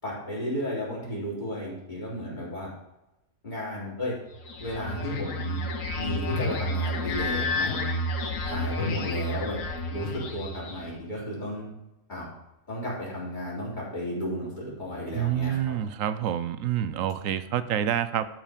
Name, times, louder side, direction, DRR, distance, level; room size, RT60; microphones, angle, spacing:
voice 1, 0.0-2.7 3.4-4.2 4.6-5.6 5.9-8.0 8.4-9.6 9.9-11.7 12.1-12.3 12.7-15.8, equal, 35° left, -7 dB, 4.0 m, -33 dB
sound 1, 4.3-11.0, left 1 dB, 90° left, 1.4 m, -30 dB
voice 2, 15.1-18.3, right 10 dB, 85° right, 13 dB, 1.0 m, -27 dB
13.0 x 4.9 x 5.1 m, 0.94 s
omnidirectional pair, 1.3 m